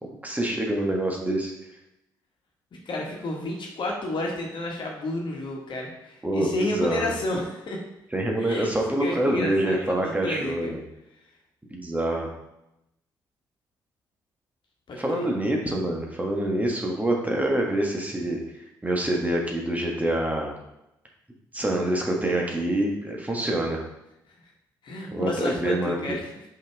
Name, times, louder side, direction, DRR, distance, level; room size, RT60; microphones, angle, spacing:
voice 1, 0.0-1.5 6.2-7.0 8.1-10.8 11.7-12.3 15.0-18.4 18.8-20.5 21.5-23.8 25.1-26.0, right 1 dB, 15° right, 0 dB, 1.6 m, -26 dB
voice 2, 2.7-7.8 8.4-8.7 9.0-10.7 14.9-15.3 24.8-26.3, left 1 dB, 50° left, -1 dB, 1.6 m, -31 dB
5.4 x 5.3 x 3.6 m, 0.87 s
hypercardioid pair, 45°, 10 cm